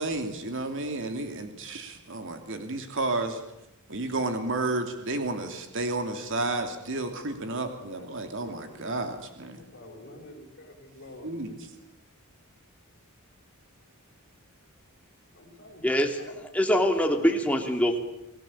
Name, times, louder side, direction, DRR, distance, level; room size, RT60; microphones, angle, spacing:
voice 1, 0.0-3.4 3.9-9.6 11.2-11.5, right 2 dB, 60° right, 6 dB, 2.9 m, -31 dB
voice 2, 7.9-9.0 9.4-11.8 15.3-16.4, left 1 dB, 50° left, -1 dB, 7.6 m, -48 dB
voice 3, 15.8-16.1 16.5-18.0, equal, 5° left, 3 dB, 3.2 m, -23 dB
29.0 x 19.5 x 8.7 m, 0.89 s
head